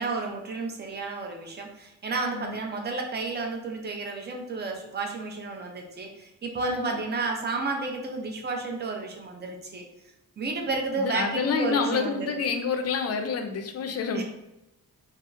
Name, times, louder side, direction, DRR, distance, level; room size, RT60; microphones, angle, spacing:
voice 1, 0.0-9.9 10.4-12.3 14.1-14.2, right 3 dB, 30° right, 2 dB, 0.5 m, -31 dB
voice 2, 6.7-7.0 11.0-14.2, left 5 dB, 45° left, 5 dB, 0.4 m, -28 dB
3.5 x 2.0 x 2.5 m, 0.93 s
cardioid pair, 95°, 35 cm